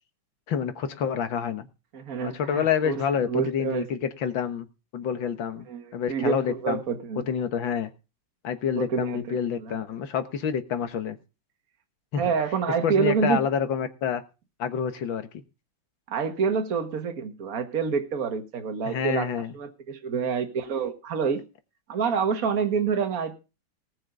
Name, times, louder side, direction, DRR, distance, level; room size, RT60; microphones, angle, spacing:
voice 1, 0.5-1.7 2.2-4.7 4.9-6.8 7.3-7.9 8.4-11.2 12.1-12.3 12.8-14.2 14.6-15.4 18.8-19.6, left 7 dB, 65° left, 9 dB, 2.0 m, -28 dB
voice 2, 1.9-3.8 5.7-7.2 8.8-9.8 12.2-13.4 16.1-19.3 19.5-21.4 21.9-23.4, right 6 dB, 45° right, 6 dB, 1.9 m, -27 dB
19.0 x 6.5 x 5.3 m, 0.31 s
omnidirectional pair, 2.3 m